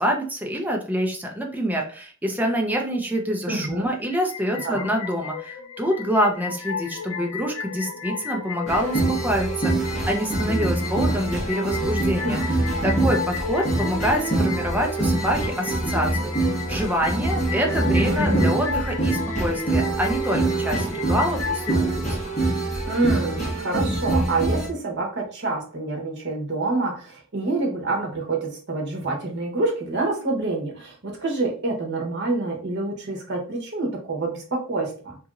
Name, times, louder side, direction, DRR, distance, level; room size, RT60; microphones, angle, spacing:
voice 1, 0.0-12.4 12.8-22.0, equal, 10° right, 1 dB, 0.5 m, -26 dB
voice 2, 3.5-3.9 4.6-4.9 12.2-12.9 18.0-18.4 22.8-35.2, right 2 dB, 60° right, 1 dB, 1.0 m, -27 dB
sound 1, 4.1-21.8, left 6 dB, 80° left, 0.5 m, -34 dB
sound 2, 8.7-24.7, right 2 dB, 35° left, 1.1 m, -25 dB
2.9 x 2.6 x 2.4 m, 0.40 s
head